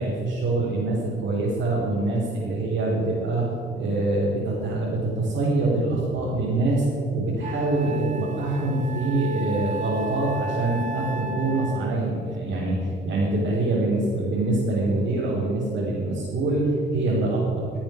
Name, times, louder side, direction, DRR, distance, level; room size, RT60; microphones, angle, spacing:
voice 1, 0.0-6.8 7.1-12.8 13.1-17.7, right 2 dB, 70° right, -7 dB, 3.9 m, -25 dB
Wind instrument woodwind instrument, 6.8-6.9 7.4-12.1, right 2 dB, 40° right, 1.0 m, -34 dB
16.5 x 8.9 x 5.2 m, 2.5 s
cardioid pair, 90°, 20 cm